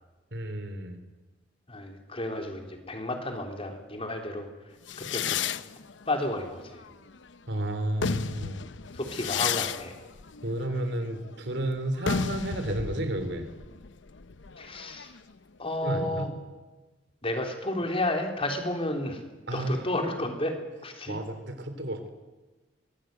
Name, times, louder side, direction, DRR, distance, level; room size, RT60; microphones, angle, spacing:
voice 1, 0.3-1.0 7.5-8.6 10.4-13.5 15.8-16.3 19.5-19.8 21.1-22.1, right 1 dB, 65° right, 8 dB, 3.5 m, -31 dB
voice 2, 1.7-4.5 5.1-5.4 6.1-6.8 8.9-10.0 14.6-15.1 15.6-16.3 17.2-19.2 19.5-20.5 20.8-21.2, left 1 dB, 30° left, 4 dB, 3.7 m, -31 dB
sound 1, 4.9-7.3 7.8-15.3, left 6 dB, 75° left, 0.8 m, -34 dB
24.0 x 20.0 x 9.1 m, 1.2 s
head